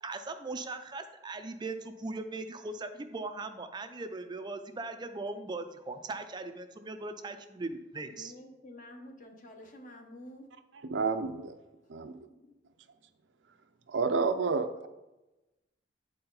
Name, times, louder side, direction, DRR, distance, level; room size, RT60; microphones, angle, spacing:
voice 1, 0.0-8.3, right 3 dB, 25° right, 8 dB, 0.4 m, -39 dB
voice 2, 8.0-10.5 12.3-12.6, left 1 dB, 45° left, 3 dB, 1.0 m, -49 dB
voice 3, 10.8-11.6 11.9-12.3 13.9-14.9, right 4 dB, 80° right, 8 dB, 0.5 m, -30 dB
8.4 x 4.3 x 3.9 m, 1.0 s
head